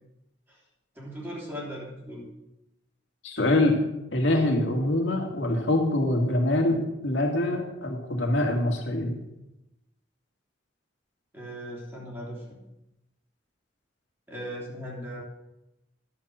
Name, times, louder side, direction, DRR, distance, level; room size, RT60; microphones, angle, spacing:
voice 1, 0.9-2.3 11.3-12.6 14.3-15.2, equal, 10° right, -4 dB, 3.0 m, -38 dB
voice 2, 3.2-3.8 4.1-9.2, left 1 dB, 70° left, 1 dB, 2.0 m, -24 dB
11.5 x 7.4 x 6.2 m, 0.89 s
head